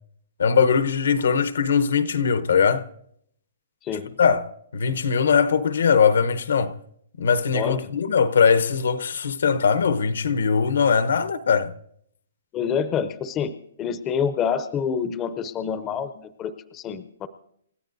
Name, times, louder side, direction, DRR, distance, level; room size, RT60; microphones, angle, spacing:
voice 1, 0.4-2.9 4.2-6.8 7.2-11.7, left 6 dB, 80° left, 0.9 m, -21 dB
voice 2, 7.5-7.9 12.5-13.5 13.8-17.3, left 7 dB, 15° left, 0.5 m, -27 dB
29.0 x 14.0 x 2.6 m
hypercardioid pair, 175°, 0 cm